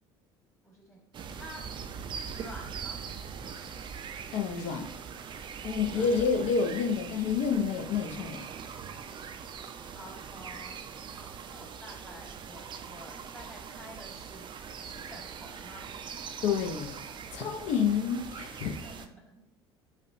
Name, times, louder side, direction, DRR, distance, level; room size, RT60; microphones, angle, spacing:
voice 1, 0.6-1.0 1.3-1.7 2.3-3.0 5.9-6.1 9.9-15.9 18.6-19.5, equal, 20° left, -2 dB, 1.3 m, -50 dB
sound 1, 1.1-19.1, right 6 dB, 35° right, 0.4 m, -42 dB
voice 2, 4.3-4.9 5.6-8.5 16.4-17.0 17.3-18.8, left 6 dB, 60° left, 5 dB, 0.6 m, -29 dB
4.9 x 2.2 x 2.6 m, 0.68 s
hypercardioid pair, 60°, 14 cm